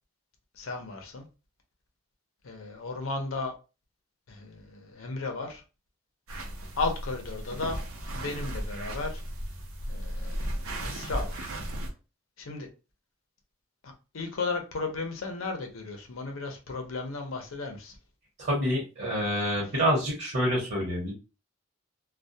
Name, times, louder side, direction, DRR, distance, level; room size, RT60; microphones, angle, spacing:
voice 1, 0.5-1.3 2.4-3.5 4.3-5.6 6.8-7.8 8.1-9.2 9.9-11.6 12.4-12.7 13.8-18.0, left 3 dB, 75° left, 0.6 m, -35 dB
sound 1, 6.3-11.9, right 1 dB, 85° right, 0.6 m, -35 dB
voice 2, 18.4-21.1, equal, 55° right, 1.0 m, -27 dB
2.2 x 2.2 x 2.6 m
head